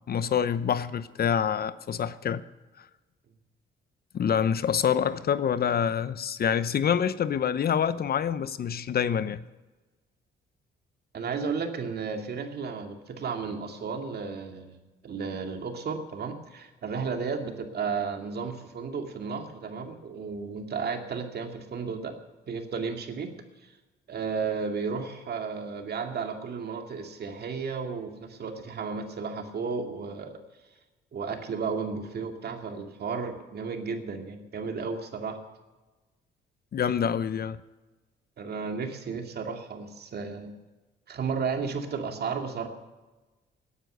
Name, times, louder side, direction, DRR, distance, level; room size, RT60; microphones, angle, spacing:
voice 1, 0.1-2.4 4.1-9.4 36.7-37.6, left 8 dB, 50° left, 0.8 m, -26 dB
voice 2, 11.1-14.8 15.0-22.1 22.5-23.3 23.6-23.7 24.1-30.4 31.1-35.4 38.4-40.5 41.1-42.7, right 5 dB, 55° right, 2.4 m, -33 dB
18.0 x 9.9 x 6.7 m
cardioid pair, 90°, 20 cm